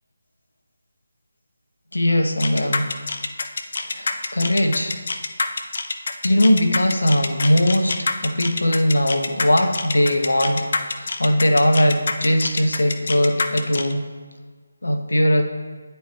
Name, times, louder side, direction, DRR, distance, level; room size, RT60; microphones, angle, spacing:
voice 1, 1.9-2.9 3.8-5.0 6.2-10.7 10.9-14.0 14.8-15.4, left 1 dB, 85° left, 4 dB, 0.9 m, -20 dB
sound 1, 2.4-13.9, left 3 dB, 55° left, 0.6 m, -26 dB
9.5 x 4.6 x 3.2 m, 1.5 s
figure-of-eight pair, 160°, 0 cm